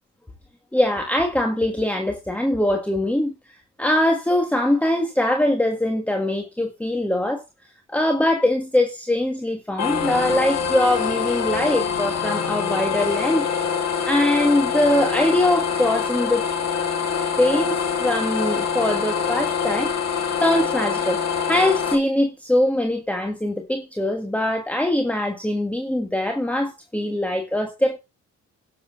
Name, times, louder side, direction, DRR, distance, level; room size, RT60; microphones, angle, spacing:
voice 1, 0.7-7.4 7.9-13.4 14.0-16.5 17.4-19.9 20.4-28.0, left 1 dB, 5° left, 1.8 m, -22 dB
sound 1, 9.8-21.9, left 6 dB, 60° left, 3.4 m, -25 dB
11.5 x 7.1 x 5.7 m
cardioid pair, 90°, 30 cm